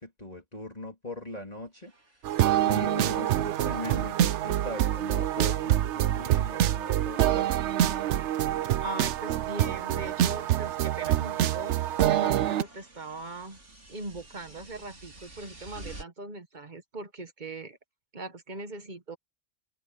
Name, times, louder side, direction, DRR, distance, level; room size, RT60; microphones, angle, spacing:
voice 1, 0.0-1.9 2.7-7.6, left 2 dB, 35° left, 3.4 m, -40 dB
sound 1, 1.2-1.3 1.7-4.2 4.4-5.7 6.0-7.2 7.8-16.0, right 1 dB, 90° right, 4.8 m, -53 dB
sound 2, 2.2-12.6, right 12 dB, 75° right, 0.9 m, -26 dB
voice 2, 8.8-13.6 13.9-17.8 18.1-19.2, right 2 dB, 40° right, 1.3 m, -40 dB
open air
omnidirectional pair, 1.2 m